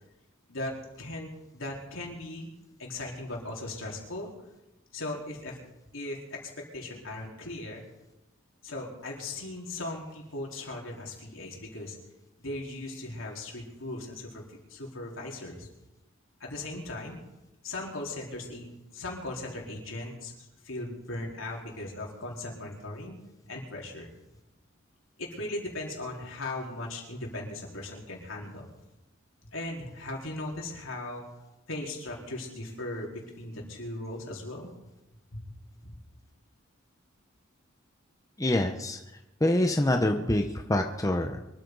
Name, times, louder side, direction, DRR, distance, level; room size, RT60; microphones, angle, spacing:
voice 1, 0.5-2.5 2.8-4.3 4.9-5.6 5.9-7.8 8.6-12.0 12.4-15.7 16.4-17.2 17.6-18.7 18.9-23.2 23.5-24.1 25.2-28.7 29.5-31.2 31.7-34.7 35.3-35.4 35.8-35.9, left 2 dB, 75° left, -2 dB, 4.2 m, -38 dB
voice 2, 38.4-39.0 39.4-41.4, left 1 dB, 15° left, 4 dB, 0.9 m, -26 dB
24.5 x 13.5 x 4.0 m, 0.95 s
head